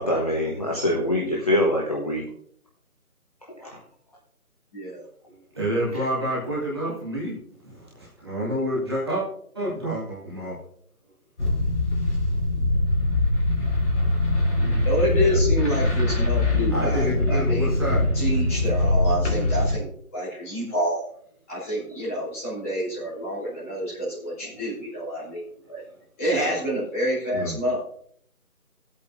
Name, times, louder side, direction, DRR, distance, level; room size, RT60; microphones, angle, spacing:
voice 1, 0.0-2.2 3.5-3.8 5.9-6.0, left 1 dB, 25° left, -3 dB, 1.1 m, -24 dB
voice 2, 4.7-5.1 14.8-17.7 18.1-21.0 21.5-25.8 26.2-27.8, equal, 10° left, -12 dB, 3.0 m, -28 dB
voice 3, 5.3-9.2 9.5-10.5 12.7-12.8 15.8-16.0 16.7-18.0 27.3-27.6, equal, 15° right, -8 dB, 1.8 m, -28 dB
sound 1, 11.4-19.8, left 2 dB, 50° left, 3.5 m, -22 dB
16.0 x 8.4 x 2.6 m, 0.65 s
figure-of-eight pair, 170°, 44 cm